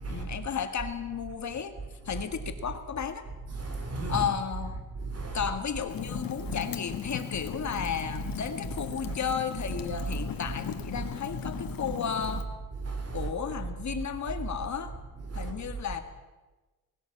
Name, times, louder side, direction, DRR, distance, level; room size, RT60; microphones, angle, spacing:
voice 1, 0.1-1.7 2.1-3.2 4.1-4.8 5.3-12.5 13.1-14.9 15.4-16.0, left 7 dB, 55° left, 1.8 m, -33 dB
voice 2, 3.5-4.2 5.0-5.5 12.8-13.3 15.3-15.5, right 3 dB, 45° right, 4.0 m, -34 dB
Fire, 5.9-12.4, left 8 dB, 90° left, 1.6 m, -38 dB
19.5 x 17.0 x 8.6 m
wide cardioid pair, 155°, 34 cm